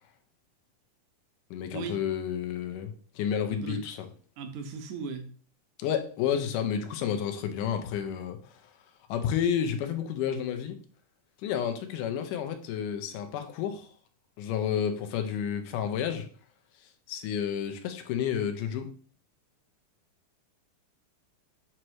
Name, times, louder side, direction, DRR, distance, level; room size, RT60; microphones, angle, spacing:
voice 1, 1.5-4.1 5.8-8.6 9.1-10.8 11.4-13.9 14.4-16.3 17.1-18.9, left 8 dB, 90° left, 2.3 m, -31 dB
voice 2, 3.5-3.8 4.4-5.3, right 4 dB, 75° right, 2.2 m, -37 dB
7.5 x 3.0 x 4.6 m
omnidirectional pair, 3.6 m